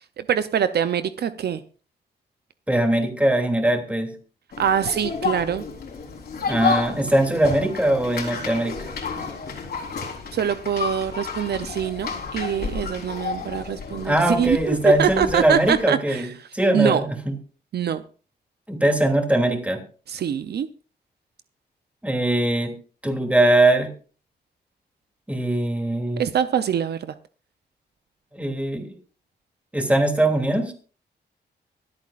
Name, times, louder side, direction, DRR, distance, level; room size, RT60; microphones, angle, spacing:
voice 1, 0.2-1.6 4.6-5.6 10.3-16.3 16.7-17.0 17.7-18.0 20.1-20.7 26.2-27.1, right 8 dB, 65° right, 11 dB, 0.6 m, -24 dB
voice 2, 2.7-4.1 6.5-8.8 14.0-16.3 16.5-17.3 18.7-19.8 22.0-22.7 23.0-23.9 25.3-26.2 28.3-28.9 29.7-30.7, right 1 dB, 5° right, 3 dB, 2.8 m, -21 dB
sound 1, 4.5-15.8, left 5 dB, 65° left, 4.0 m, -31 dB
25.0 x 8.5 x 2.5 m, 0.38 s
cardioid pair, 110°, 18 cm